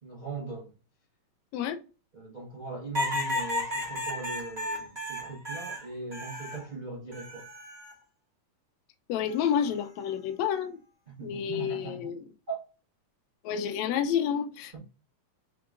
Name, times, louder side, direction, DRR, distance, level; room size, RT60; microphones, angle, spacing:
voice 1, 0.0-0.7 2.1-7.5 11.1-12.2 12.5-12.6 14.7-14.8, right 4 dB, 70° right, 0.4 m, -39 dB
sound 1, 2.9-6.7 7.1-7.9 9.3-9.7, left 1 dB, 25° right, 1.4 m, -33 dB
voice 2, 9.1-10.8 11.2-12.2 13.4-14.8, left 8 dB, 75° left, 1.7 m, -29 dB
4.8 x 3.8 x 2.4 m
omnidirectional pair, 3.7 m